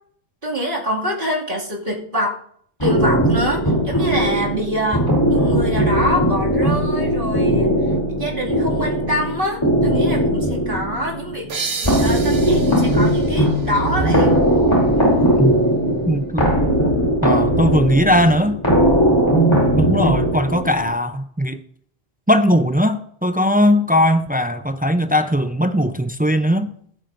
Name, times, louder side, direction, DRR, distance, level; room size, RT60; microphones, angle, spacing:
voice 1, 0.4-2.4 2.8-14.4, equal, 55° right, -3 dB, 2.6 m, -25 dB
sound 1, 2.8-20.9, right 1 dB, 25° left, 3.2 m, -18 dB
sound 2, 11.5-14.9, right 5 dB, 80° right, 1.2 m, -32 dB
voice 2, 16.1-16.5 17.2-18.6 19.8-21.6 22.3-26.7, equal, 15° right, 8 dB, 0.3 m, -18 dB
20.5 x 8.8 x 2.6 m, 0.65 s
omnidirectional pair, 1.0 m